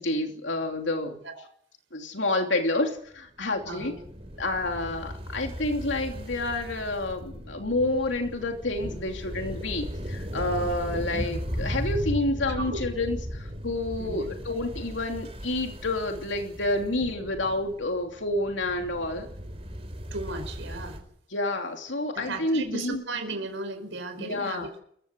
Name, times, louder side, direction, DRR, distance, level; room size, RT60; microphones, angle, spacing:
voice 1, 0.0-1.2 1.9-3.9 4.4-19.3 21.3-23.0 24.2-24.7, left 2 dB, 80° left, 3 dB, 2.9 m, -29 dB
sound 1, 3.4-21.0, equal, 30° right, 4.0 m, -37 dB
voice 2, 3.6-4.0 12.6-12.9 14.0-14.3 20.1-21.0 22.1-24.8, right 2 dB, 85° right, 6 dB, 4.8 m, -35 dB
27.0 x 16.0 x 8.1 m, 0.69 s
head